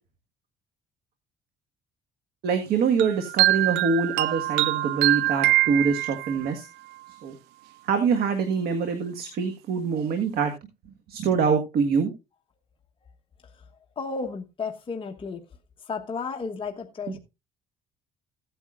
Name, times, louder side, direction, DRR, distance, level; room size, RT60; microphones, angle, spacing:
voice 1, 2.4-6.7 7.2-7.3 7.8-10.5 11.1-12.1 17.1-17.2, right 5 dB, 65° right, 1.7 m, -25 dB
sound 1, 3.0-6.5, right 17 dB, 90° right, 0.5 m, -23 dB
voice 2, 14.0-15.4 15.9-17.2, left 4 dB, 30° left, 1.2 m, -33 dB
15.5 x 9.2 x 2.5 m
cardioid pair, 110°, 17 cm